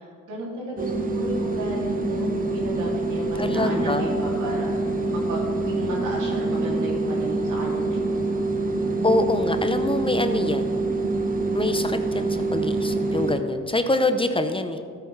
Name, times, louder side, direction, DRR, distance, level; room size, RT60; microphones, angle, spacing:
voice 1, 0.3-4.7 5.1-8.4, right 1 dB, 85° right, -3 dB, 2.7 m, -33 dB
sound 1, 0.8-13.4, right 2 dB, 30° right, 0.9 m, -25 dB
voice 2, 3.4-4.1 9.0-10.8 11.5-14.8, left 2 dB, 20° left, 8 dB, 0.6 m, -25 dB
13.5 x 8.3 x 3.2 m, 2.2 s
cardioid pair, 90°, 30 cm